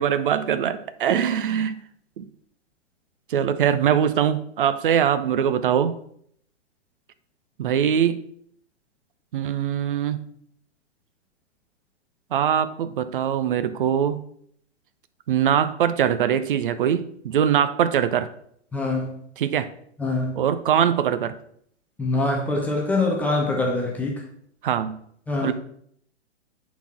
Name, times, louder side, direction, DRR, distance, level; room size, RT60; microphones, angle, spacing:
voice 1, 0.0-1.8 2.2-2.3 3.3-6.0 7.6-8.2 9.3-10.2 12.3-14.2 15.3-18.3 19.4-19.7 20.4-21.3 24.6-25.0 25.4-25.5, right 9 dB, 45° right, 12 dB, 0.6 m, -22 dB
voice 2, 18.7-19.1 20.0-20.4 22.0-24.2 25.3-25.5, left 2 dB, 5° left, -2 dB, 0.6 m, -24 dB
8.2 x 4.2 x 4.2 m, 0.66 s
figure-of-eight pair, 120°, 35 cm